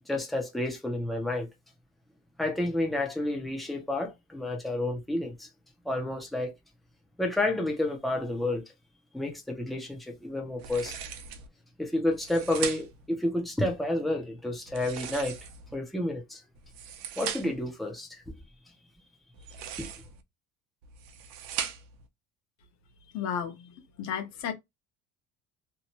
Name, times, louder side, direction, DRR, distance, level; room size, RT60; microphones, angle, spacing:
voice 1, 0.1-1.5 2.4-5.5 5.8-6.5 7.2-8.6 9.1-11.0 11.8-15.4 15.7-16.4 17.2-18.2 19.8-19.9, left 1 dB, ahead, 0.4 m, -30 dB
sound 1, 10.6-11.5 12.1-13.1 14.7-15.7 16.5-17.7 19.3-20.2 20.8-22.0, right 9 dB, 75° right, 0.6 m, -39 dB
voice 2, 23.1-24.5, left 8 dB, 50° left, 0.8 m, -33 dB
2.7 x 2.1 x 2.8 m
cardioid pair, 165°, 34 cm